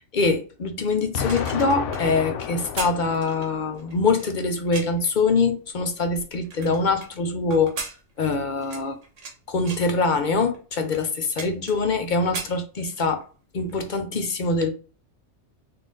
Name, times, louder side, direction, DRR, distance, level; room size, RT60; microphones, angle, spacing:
voice 1, 0.1-7.7 8.2-9.0 9.5-13.3 13.5-14.7, left 3 dB, 50° left, 0.6 m, -24 dB
Explosion, 1.1-4.1, left 6 dB, 80° left, 0.9 m, -31 dB
sound 1, 1.1-5.1 5.7-7.1 7.5-9.4 9.6-9.9 10.5-10.6 10.9-12.0 12.2-13.2 13.6-13.8, right 4 dB, 80° right, 1.4 m, -37 dB
4.1 x 2.5 x 3.7 m
omnidirectional pair, 1.3 m